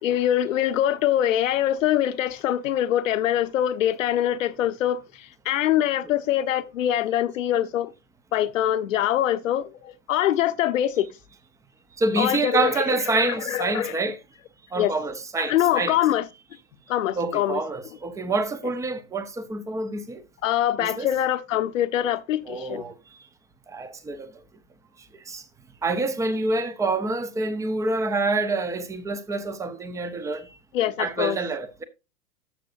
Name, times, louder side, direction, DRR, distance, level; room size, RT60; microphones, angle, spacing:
voice 1, 0.0-7.9 8.3-11.1 12.2-12.7 13.1-14.0 14.8-14.9 15.4-16.3 16.9-17.6 20.4-22.8 30.7-31.4, left 11 dB, 60° left, 0.9 m, -24 dB
voice 2, 12.0-14.2 14.7-16.0 17.2-20.2 20.8-21.1 22.5-22.9 23.7-24.3 25.3-25.4 25.8-30.4 31.0-31.8, right 3 dB, 5° right, 0.6 m, -27 dB
13.0 x 6.7 x 2.5 m
hypercardioid pair, 110°, 45 cm